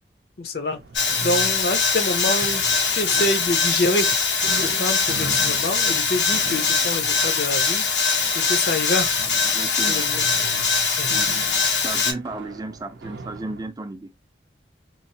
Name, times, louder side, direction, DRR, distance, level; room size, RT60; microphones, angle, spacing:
voice 1, 0.4-0.8 1.2-2.6 2.9-4.2 4.6-7.9 8.3-9.2 9.9-10.2 11.0-11.3, left 2 dB, 60° left, 0.6 m, -26 dB
sound 1, 0.7-13.7, right 3 dB, 85° right, 0.5 m, -40 dB
sound 2, 0.9-12.1, left 5 dB, 90° left, 0.9 m, -22 dB
voice 2, 9.5-10.1 10.4-10.6 11.1-11.3 11.8-14.1, right 2 dB, 20° right, 0.4 m, -34 dB
3.0 x 2.0 x 2.6 m
head